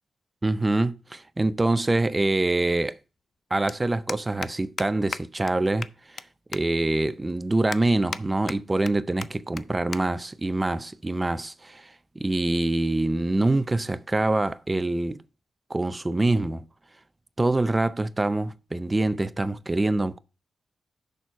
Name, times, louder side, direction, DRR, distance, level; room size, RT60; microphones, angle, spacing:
voice 1, 0.4-3.0 3.5-5.9 6.5-15.2 15.7-16.6 17.4-20.2, right 2 dB, 15° right, 0.5 m, -25 dB
sound 1, 1.4-1.5 2.9-3.0 3.2-3.4 3.7-3.8 4.1-4.5 4.8-4.9 5.1-5.2 5.5-5.6 5.8-6.2 6.5-6.6 7.1-7.2 7.7-8.2 8.5-8.9 9.2-9.3 9.6-9.7 9.9-10.0 10.3-10.6 11.3-11.6, left 6 dB, 50° left, 0.4 m, -34 dB
6.8 x 6.1 x 4.7 m
wide cardioid pair, 160°, 0 cm